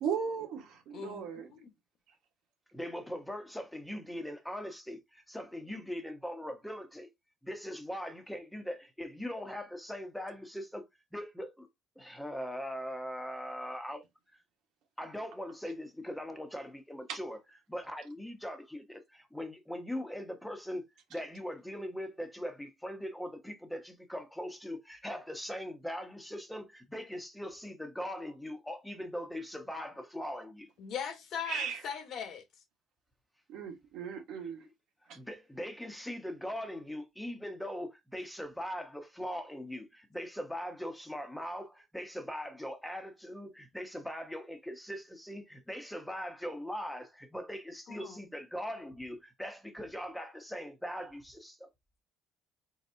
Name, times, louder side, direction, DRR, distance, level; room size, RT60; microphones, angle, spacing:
voice 1, 0.0-1.5 17.1-17.2 31.5-31.8 33.5-34.6 35.1-35.2, right 7 dB, 70° right, 1.4 m, -36 dB
voice 2, 0.9-1.7 30.8-32.4 47.9-48.2, left 7 dB, 55° left, 1.2 m, -40 dB
voice 3, 2.7-7.1 7.4-11.7 12.0-14.0 15.0-17.4 17.7-20.8 21.1-30.7 35.1-51.7, equal, 5° left, 1.1 m, -40 dB
4.1 x 4.0 x 2.7 m
cardioid pair, 110°, 0 cm